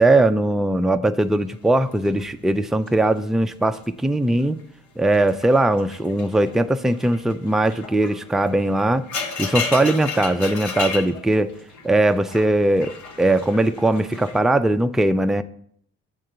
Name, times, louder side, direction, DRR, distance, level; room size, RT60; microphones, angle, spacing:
voice 1, 0.0-4.6 5.0-9.1 9.4-11.5 11.8-15.4, right 2 dB, ahead, 8 dB, 0.4 m, -20 dB
sound 1, 1.5-3.9 4.2-4.6 5.1-14.4, left 5 dB, 70° left, 1.3 m, -34 dB
7.7 x 3.8 x 6.6 m, 0.63 s
cardioid pair, 90°, 30 cm